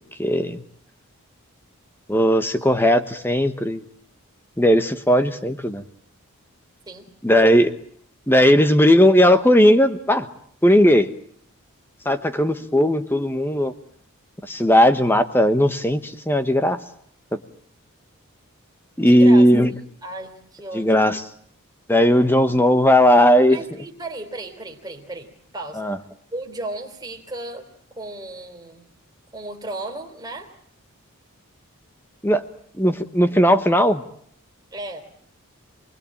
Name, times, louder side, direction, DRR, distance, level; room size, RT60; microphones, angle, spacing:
voice 1, 0.2-0.6 2.1-3.8 4.6-5.8 7.2-7.7 8.3-10.3 10.6-11.1 12.0-13.7 14.4-16.8 17.3-17.4 19.0-19.7 20.7-21.2 21.9-23.6 25.8-26.0 32.2-32.5 32.8-34.0, equal, 10° left, 10 dB, 1.2 m, -17 dB
voice 2, 19.0-19.5 20.0-21.1 23.5-25.9 26.3-27.7 27.9-28.9 29.3-30.5 34.7-35.1, right 2 dB, 20° right, 2 dB, 3.5 m, -35 dB
28.0 x 20.5 x 8.8 m, 0.66 s
head